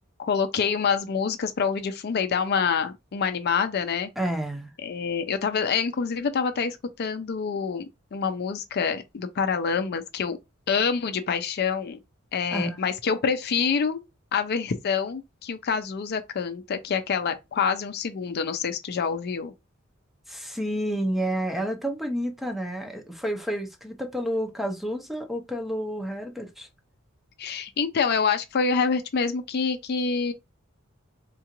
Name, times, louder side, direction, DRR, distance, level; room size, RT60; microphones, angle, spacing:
voice 1, 0.2-4.1 4.8-10.4 10.7-12.0 12.3-14.0 14.3-19.5 27.4-30.3, left 6 dB, 50° left, 0.4 m, -26 dB
voice 2, 4.2-4.7 12.5-12.8 20.3-26.7, equal, ahead, 0.5 m, -30 dB
3.7 x 2.4 x 2.9 m
head